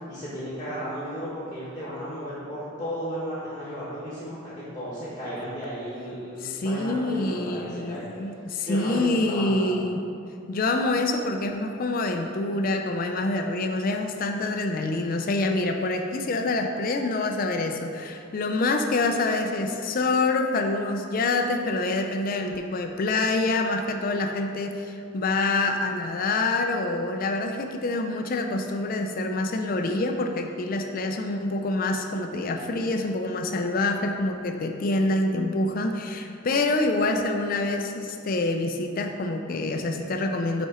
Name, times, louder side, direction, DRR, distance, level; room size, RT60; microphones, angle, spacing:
voice 1, 0.1-8.2 8.6-9.7, equal, 20° left, -9 dB, 1.1 m, -34 dB
voice 2, 6.4-10.0 10.5-40.7, left 2 dB, 45° left, 5 dB, 0.4 m, -26 dB
5.5 x 4.3 x 4.9 m, 2.5 s
head